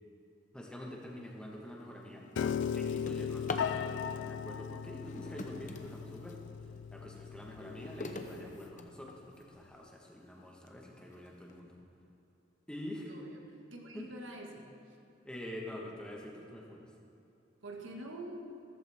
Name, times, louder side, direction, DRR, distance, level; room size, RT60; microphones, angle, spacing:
voice 1, 0.5-6.4 6.9-11.7 12.7-13.1 13.9-14.1 15.2-16.9, left 1 dB, 5° left, -2 dB, 1.3 m, -46 dB
Drawer open or close, 1.1-1.3 1.8-3.8 4.9-6.5 7.0-9.4 10.1-10.2 10.7-10.8 11.1-11.5, left 3 dB, 40° left, 0.7 m, -45 dB
Piano, 2.4-8.6, left 7 dB, 65° left, 0.3 m, -38 dB
voice 2, 13.0-15.0 17.6-18.3, right 1 dB, 85° right, 0 dB, 1.7 m, -46 dB
14.5 x 14.0 x 3.6 m, 2.7 s
head